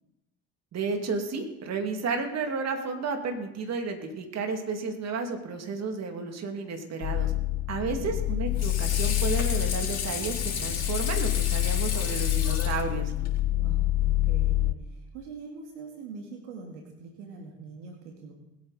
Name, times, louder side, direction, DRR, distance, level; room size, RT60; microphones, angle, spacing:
voice 1, 0.7-7.3 7.7-13.1, right 4 dB, 45° right, 4 dB, 2.6 m, -32 dB
sound 1, 7.0-14.7, left 16 dB, 60° left, 0.7 m, -27 dB
Water / Sink (filling or washing), 7.9-13.4, left 7 dB, 45° left, 4.0 m, -34 dB
voice 2, 13.5-18.3, right 4 dB, 80° right, 2 dB, 2.2 m, -43 dB
20.5 x 9.1 x 4.2 m, 0.92 s
hypercardioid pair, 65°, 35 cm